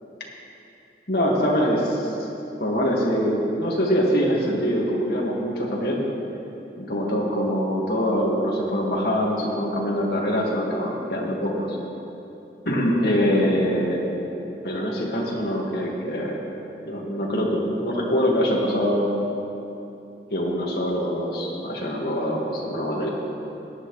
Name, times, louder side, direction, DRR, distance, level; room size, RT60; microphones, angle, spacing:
voice 1, 1.1-2.2 2.6-6.0 6.8-11.8 12.7-14.2 14.6-16.4 16.8-19.2 20.3-23.1, equal, 65° left, -3 dB, 2.0 m, -24 dB
17.5 x 11.0 x 3.3 m, 2.8 s
head